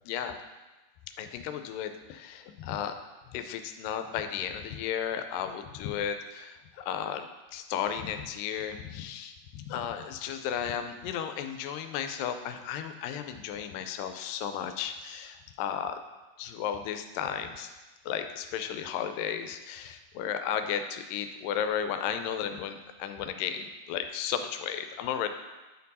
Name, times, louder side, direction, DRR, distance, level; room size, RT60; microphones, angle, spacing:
voice 1, 0.1-0.4 1.2-2.9 3.3-7.3 7.5-16.0 16.4-17.8 18.1-25.3, left 8 dB, 90° left, 8 dB, 2.2 m, -34 dB
8.9 x 4.4 x 4.1 m, 1.1 s
omnidirectional pair, 3.8 m